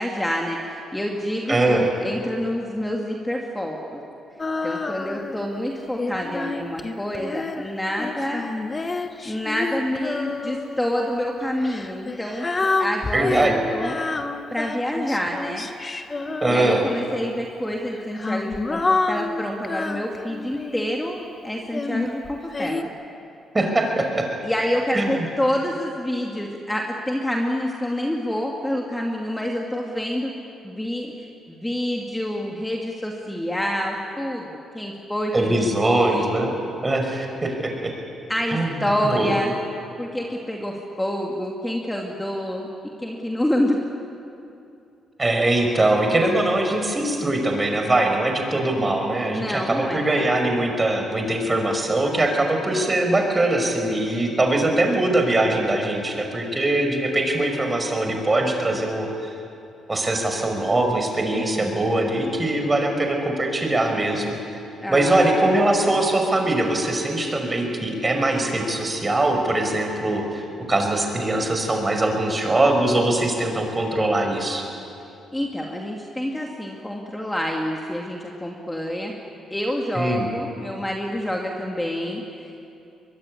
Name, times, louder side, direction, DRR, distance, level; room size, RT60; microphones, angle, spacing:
voice 1, 0.0-4.0 4.6-8.5 9.2-12.5 12.8-14.0 14.5-15.7 16.5-22.9 24.4-30.3 30.6-36.3 38.3-39.5 40.0-42.7 43.0-43.8 49.3-50.4 61.3-61.9 64.8-65.3 75.3-79.1 79.5-82.7, equal, 10° left, 0 dB, 2.5 m, -27 dB
voice 2, 1.5-1.9 13.1-13.5 16.4-16.8 23.5-24.3 24.9-25.3 35.3-36.5 36.8-37.9 38.5-39.3 45.2-59.3 59.9-64.6 64.9-74.6 80.0-80.3, right 2 dB, 20° right, 3 dB, 5.8 m, -22 dB
Female singing, 4.4-5.4 6.0-10.8 11.6-17.1 17.9-21.0 21.7-22.8, left 3 dB, 30° left, 1.6 m, -28 dB
24.0 x 22.0 x 9.9 m, 2.6 s
cardioid pair, 90°, 0 cm